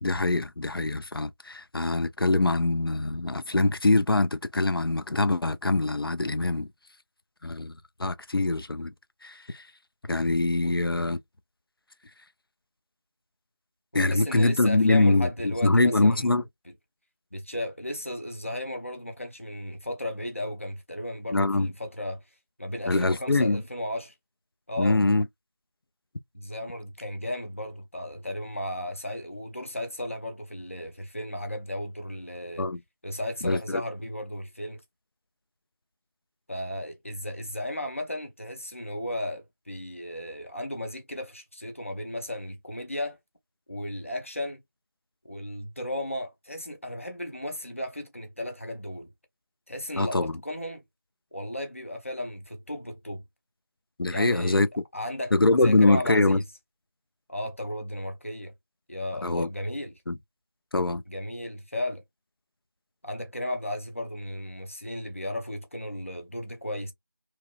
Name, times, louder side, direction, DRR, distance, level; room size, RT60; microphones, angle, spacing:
voice 1, 0.0-6.7 7.4-7.7 8.0-8.9 9.2-9.6 10.1-11.2 13.9-16.4 21.3-21.7 22.9-23.6 24.8-25.3 32.6-32.8 33.4-33.8 50.0-50.4 54.0-54.7 55.3-56.4 59.2-59.5 60.1-60.2 60.7-61.0, left 2 dB, 85° left, 0.5 m, -23 dB
voice 2, 14.1-16.4 17.3-22.2 22.6-24.1 24.7-25.0 26.3-32.7 33.0-34.8 36.5-43.2 43.7-44.6 45.3-49.1 49.7-50.8 51.3-53.2 54.1-54.6 54.9-56.5 57.3-58.5 58.9-60.0 61.1-62.0 63.0-66.9, left 1 dB, 35° left, 0.5 m, -35 dB
3.0 x 2.0 x 2.3 m
figure-of-eight pair, 175°, 12 cm